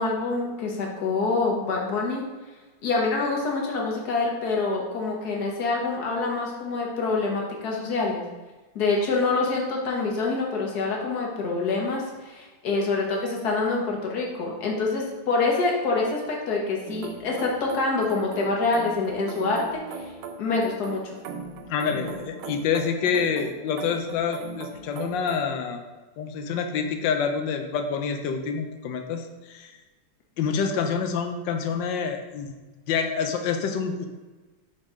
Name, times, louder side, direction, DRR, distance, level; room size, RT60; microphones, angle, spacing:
voice 1, 0.0-2.2 2.8-8.2 8.7-20.1 20.4-21.1, left 3 dB, 55° left, -1 dB, 1.6 m, -26 dB
sound 1, 16.9-25.5, right 5 dB, 85° right, 1.5 m, -39 dB
voice 2, 21.7-25.9 26.2-29.7 30.4-32.5 32.9-34.1, left 6 dB, 70° left, 5 dB, 1.3 m, -27 dB
6.3 x 4.0 x 4.9 m, 1.2 s
omnidirectional pair, 2.2 m